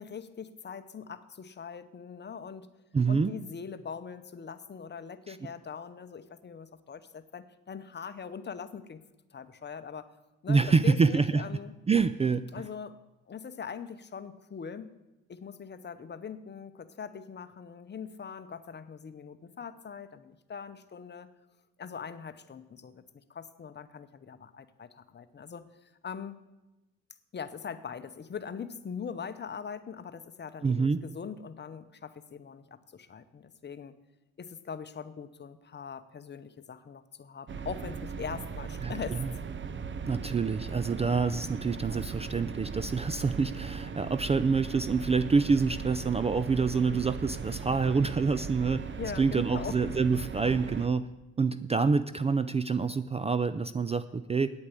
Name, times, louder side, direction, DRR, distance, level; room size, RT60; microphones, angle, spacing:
voice 1, 0.0-2.7 3.1-9.0 9.3-10.1 10.4-11.7 12.5-13.0 13.3-14.9 15.3-21.3 21.8-26.4 27.3-33.9 34.4-39.4 49.0-49.8, left 6 dB, 35° left, 11 dB, 0.9 m, -42 dB
voice 2, 2.9-3.3 5.3-5.4 10.5-11.4 11.9-12.5 30.6-31.0 38.8-38.9 39.2-39.3 40.1-48.8 49.2-51.1 51.4-54.5, right 4 dB, 20° right, 13 dB, 0.4 m, -27 dB
sound 1, 37.5-50.9, right 5 dB, 40° right, 0.8 m, -38 dB
9.2 x 8.5 x 8.3 m, 1.0 s
cardioid pair, 90°, 30 cm